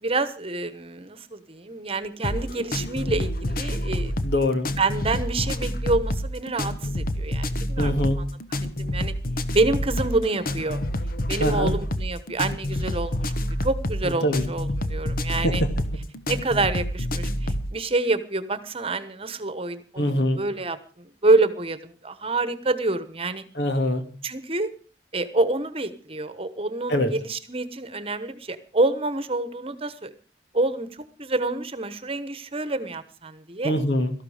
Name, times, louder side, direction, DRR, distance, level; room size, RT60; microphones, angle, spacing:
voice 1, 0.0-4.1 4.8-8.2 8.6-9.1 9.5-10.8 11.3-13.3 13.6-15.6 16.3-20.8 21.2-23.4 24.2-24.7 25.1-30.1 30.5-33.7, right 2 dB, 35° right, 13 dB, 1.2 m, -27 dB
sound 1, 2.2-17.7, equal, 55° left, 1.2 m, -28 dB
voice 2, 4.2-4.7 7.8-8.2 11.4-11.7 14.0-14.5 15.4-15.7 20.0-20.4 23.6-24.0 26.9-27.1 33.6-34.1, equal, 70° left, 7 dB, 2.4 m, -23 dB
18.0 x 13.5 x 5.0 m, 0.39 s
head